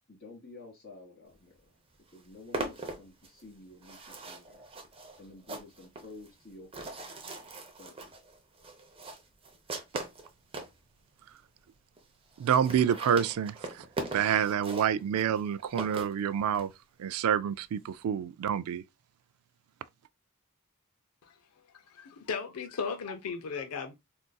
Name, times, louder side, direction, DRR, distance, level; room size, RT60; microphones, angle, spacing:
voice 1, 0.1-1.7 2.1-4.6 5.2-7.1 7.8-8.1, left 2 dB, 45° left, 2.0 m, -51 dB
sound 1, 1.6-1.7 1.9-10.8 11.4-11.5 11.7-11.8 12.0-12.1 12.3-16.7, right 2 dB, 25° right, 0.6 m, -41 dB
voice 2, 12.4-13.8 14.1-16.7 17.0-18.8, right 8 dB, 75° right, 0.3 m, -28 dB
voice 3, 21.9-23.9, left 5 dB, 80° left, 0.5 m, -36 dB
3.7 x 2.6 x 2.2 m
head